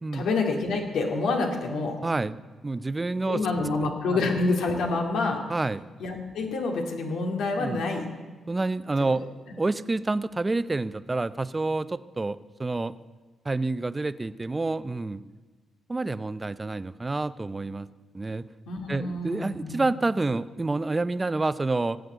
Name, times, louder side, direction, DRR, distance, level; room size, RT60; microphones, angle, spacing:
voice 1, 0.1-2.0 3.3-5.4 6.0-8.1 18.7-19.9, left 3 dB, 90° left, 1 dB, 2.4 m, -27 dB
voice 2, 2.0-2.4 2.6-3.4 3.8-3.9 5.5-5.8 7.6-7.8 8.5-9.3 9.6-12.9 13.4-15.2 15.9-17.9 18.1-18.4 18.9-22.0, right 3 dB, 20° right, 14 dB, 0.6 m, -28 dB
18.5 x 7.9 x 7.9 m, 1.3 s
cardioid pair, 95°, 0 cm